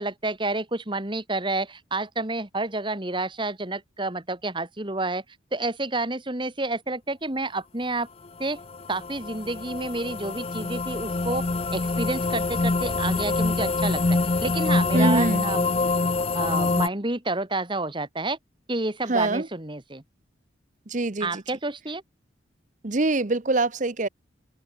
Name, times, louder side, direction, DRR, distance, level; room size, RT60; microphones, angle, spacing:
voice 1, 0.0-5.2 5.5-8.1 8.4-8.6 8.9-11.4 11.7-15.7 16.3-18.4 18.7-20.0 21.2-22.0, right 2 dB, 25° right, 1.8 m, -29 dB
sound 1, 8.4-16.9, left 3 dB, 30° left, 0.6 m, -25 dB
voice 2, 14.9-15.4 19.1-19.5 20.9-21.4 22.8-24.1, right 2 dB, 40° right, 0.9 m, -24 dB
head